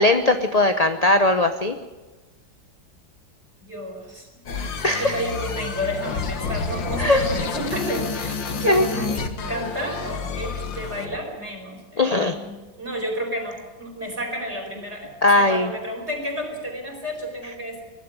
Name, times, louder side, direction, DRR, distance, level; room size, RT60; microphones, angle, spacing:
voice 1, 0.0-1.8 4.8-5.1 7.0-7.3 8.7-8.8 12.0-12.3 15.2-15.7, left 2 dB, 35° left, 8 dB, 0.6 m, -19 dB
voice 2, 3.6-4.4 5.0-17.8, equal, 35° right, 1 dB, 5.0 m, -31 dB
sound 1, 4.5-11.2, left 4 dB, 80° left, 2.3 m, -29 dB
22.0 x 12.0 x 9.9 m, 1.2 s
omnidirectional pair, 2.0 m